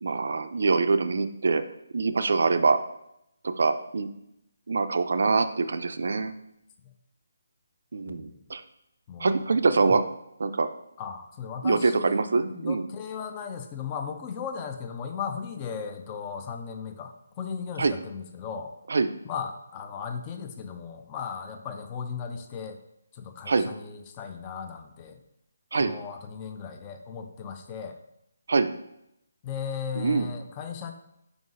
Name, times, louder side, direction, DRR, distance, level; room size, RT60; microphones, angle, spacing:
voice 1, 0.0-1.6 1.9-2.8 3.4-4.1 4.7-6.3 7.9-8.6 9.2-10.0 10.4-10.7 11.6-12.8 17.8-17.9 18.9-19.1 23.5-23.7 25.7-25.9 28.5-28.7 30.0-30.3, right 4 dB, 65° right, 11 dB, 0.3 m, -24 dB
voice 2, 8.1-8.4 9.1-9.4 11.0-18.7 19.3-22.8 23.1-25.2 25.8-28.0 29.4-30.9, left 6 dB, 20° left, 6 dB, 0.4 m, -36 dB
4.7 x 3.9 x 2.5 m, 0.81 s
hypercardioid pair, 160°, 0 cm